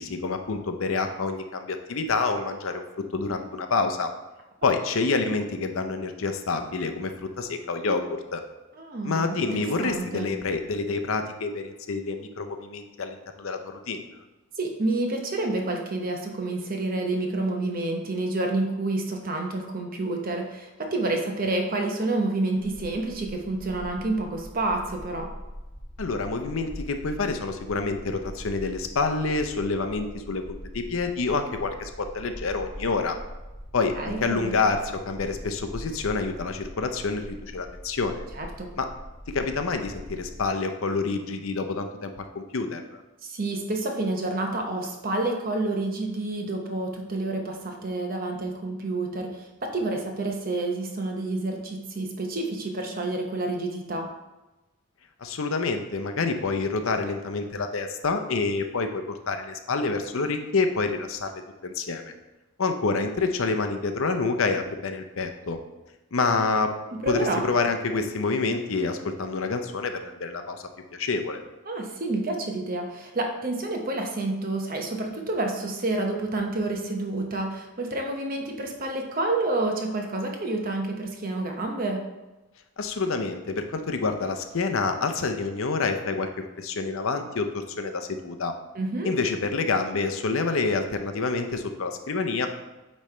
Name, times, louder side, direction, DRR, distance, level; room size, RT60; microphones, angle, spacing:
voice 1, 0.0-2.8 3.1-4.1 4.6-8.4 9.0-14.0 26.0-33.2 33.7-34.8 35.1-38.3 38.8-38.9 39.3-43.0 55.2-62.1 62.6-65.6 66.1-66.7 67.1-71.4 82.8-86.3 86.6-88.5 89.0-92.5, left 4 dB, 65° left, 7 dB, 0.6 m, -27 dB
voice 2, 8.8-10.3 14.6-25.3 34.0-34.7 38.3-38.7 43.2-54.1 67.0-67.4 71.7-82.0 88.8-89.1, right 2 dB, 40° right, 2 dB, 0.9 m, -29 dB
sound 1, 22.6-40.4, equal, 30° left, 1.6 m, -42 dB
8.6 x 3.2 x 4.3 m, 1.1 s
head